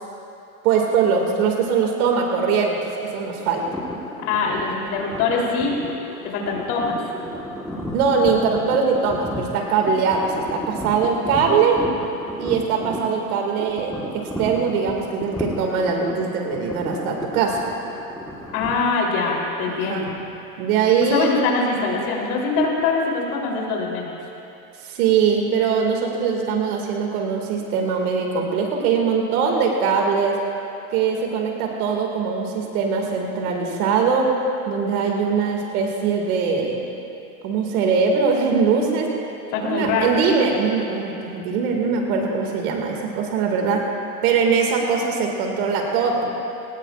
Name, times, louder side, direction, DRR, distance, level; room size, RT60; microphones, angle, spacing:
voice 1, 0.6-3.6 7.9-11.8 12.4-17.6 19.7-20.0 20.6-21.3 24.8-30.4 30.9-34.3 34.7-36.8 37.4-39.1 39.6-43.9 44.2-46.3, right 5 dB, 80° right, 0 dB, 2.4 m, -21 dB
sound 1, 3.6-18.7, equal, ahead, 1.5 m, -33 dB
voice 2, 4.3-5.8 6.2-7.0 18.5-20.1 21.1-24.1 39.5-40.1, left 4 dB, 70° left, -2 dB, 3.7 m, -23 dB
21.5 x 19.0 x 2.5 m, 2.8 s
supercardioid pair, 145°, 43 cm